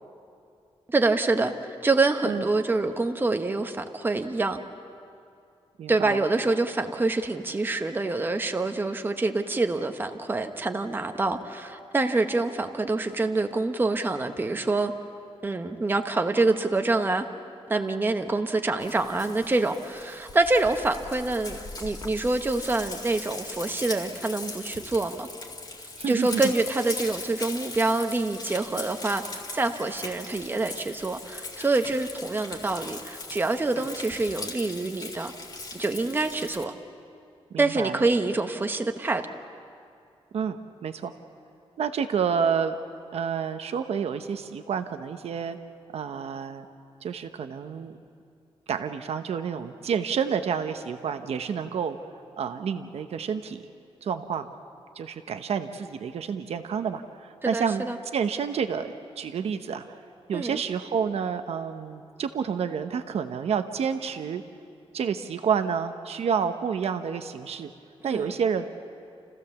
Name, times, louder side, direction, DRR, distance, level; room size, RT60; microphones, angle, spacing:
voice 1, 0.9-1.5 1.8-4.6 5.9-14.9 15.4-17.2 17.7-25.3 26.1-35.3 35.7-36.7 37.6-39.2 57.4-58.0 60.3-60.6 68.0-68.3, right 3 dB, 20° right, 6 dB, 0.9 m, -26 dB
voice 2, 5.8-6.3 26.0-26.5 37.5-38.0 40.3-41.1 41.8-42.8 43.1-45.6 45.9-46.7 47.0-48.0 48.7-52.0 52.4-53.6 54.0-54.5 55.0-57.8 58.1-60.0 60.3-64.4 64.9-67.7 68.0-68.7, right 7 dB, 80° right, 8 dB, 0.9 m, -29 dB
Frying (food), 18.8-36.7, left 3 dB, 40° left, 2.1 m, -39 dB
29.5 x 15.5 x 7.0 m, 2.4 s
wide cardioid pair, 160°, 10 cm